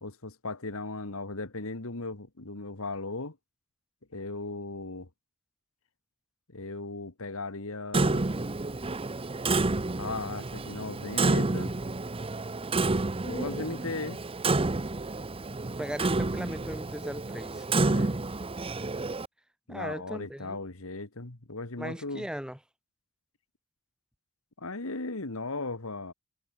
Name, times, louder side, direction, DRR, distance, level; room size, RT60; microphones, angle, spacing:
voice 1, 0.0-3.4 4.1-5.1 6.5-8.3 10.0-11.7 13.2-14.2 17.8-18.2 19.7-22.3 24.6-26.1, left 3 dB, 65° left, 2.1 m, -37 dB
Clock, 7.9-19.3, right 3 dB, 25° right, 0.8 m, -29 dB
voice 2, 15.8-17.7 19.7-20.6 21.8-22.6, equal, 5° right, 1.8 m, -38 dB
head